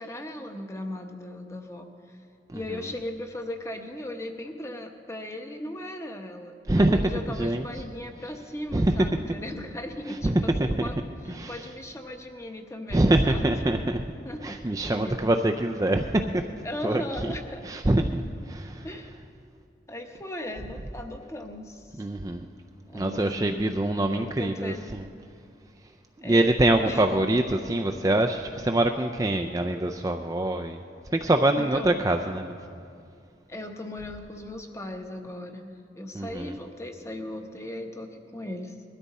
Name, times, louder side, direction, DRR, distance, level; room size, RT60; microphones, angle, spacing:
voice 1, 0.0-2.2 2.5-11.0 11.5-13.5 14.2-14.5 14.8-15.3 16.6-17.7 18.8-19.1 19.9-22.1 22.9-23.8 24.1-24.9 26.2-26.6 26.8-27.1 31.6-32.0 33.5-38.7, left 1 dB, 15° left, 4 dB, 0.9 m, -37 dB
voice 2, 6.7-7.7 8.7-9.3 10.0-11.7 12.9-14.0 14.4-16.5 16.8-17.3 17.6-18.2 18.5-19.0 21.9-22.5 22.9-25.1 26.2-30.8 31.1-32.6 36.1-36.6, right 1 dB, 20° right, 5 dB, 0.4 m, -25 dB
20.5 x 13.5 x 4.2 m, 2.3 s
head